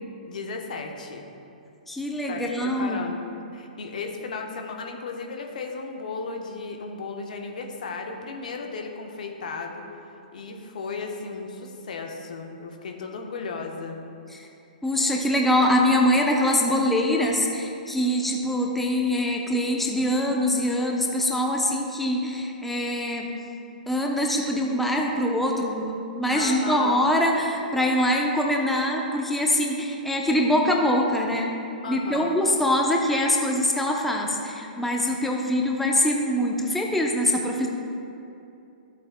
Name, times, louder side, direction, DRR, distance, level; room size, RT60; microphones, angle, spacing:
voice 1, 0.3-1.3 2.3-9.9 10.3-14.0 26.3-27.0 31.8-32.4, left 4 dB, 65° left, 3 dB, 1.1 m, -35 dB
voice 2, 1.9-3.0 14.3-14.5 14.8-23.3 23.9-31.5 31.9-37.7, left 1 dB, 5° left, 0 dB, 0.8 m, -23 dB
14.0 x 8.1 x 2.3 m, 2.7 s
figure-of-eight pair, 115°, 5 cm